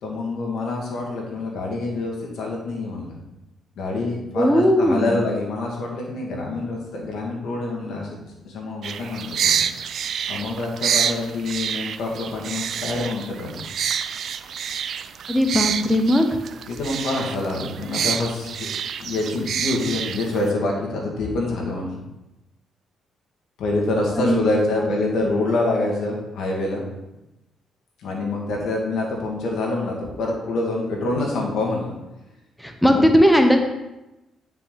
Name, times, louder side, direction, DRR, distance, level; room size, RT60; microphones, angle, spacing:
voice 1, 0.0-3.2 3.8-13.6 16.7-18.7 19.0-22.0 23.6-26.8 28.0-31.9 32.9-33.2, left 2 dB, 75° left, -1 dB, 2.3 m, -26 dB
voice 2, 4.4-5.1 15.3-16.3 24.2-24.9 32.6-33.6, equal, 5° left, 4 dB, 1.0 m, -18 dB
sound 1, 8.8-20.5, right 8 dB, 60° right, 0.4 m, -27 dB
9.4 x 5.8 x 4.1 m, 0.98 s
cardioid pair, 90°, 0 cm